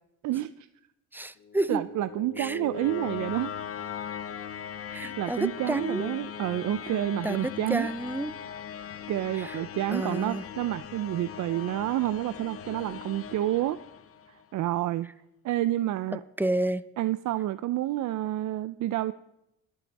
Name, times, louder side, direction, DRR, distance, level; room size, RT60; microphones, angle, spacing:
voice 1, 0.2-0.7 1.7-3.5 4.9-7.9 9.1-13.8 14.3-15.1 15.4-16.2 17.0-19.1, right 14 dB, 70° right, 14 dB, 0.5 m, -29 dB
voice 2, 1.1-1.8 2.4-2.6 4.9-6.2 7.2-8.3 9.4-9.6 9.9-10.4 16.4-16.8, right 1 dB, 5° right, 15 dB, 0.6 m, -30 dB
sound 1, 1.4-14.4, left 8 dB, 50° left, 0.9 m, -39 dB
21.0 x 11.0 x 4.1 m, 0.86 s
cardioid pair, 90°, 30 cm